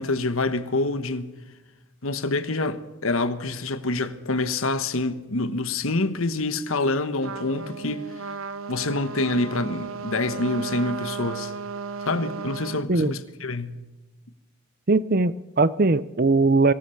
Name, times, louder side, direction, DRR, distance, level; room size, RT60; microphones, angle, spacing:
voice 1, 0.0-1.3 2.0-8.1 8.7-11.5 12.0-13.8, left 2 dB, 75° left, 1.4 m, -26 dB
Trumpet, 7.2-12.8, right 5 dB, 75° right, 0.9 m, -35 dB
voice 2, 14.9-16.7, right 3 dB, 45° right, 0.7 m, -20 dB
24.0 x 17.5 x 7.1 m
head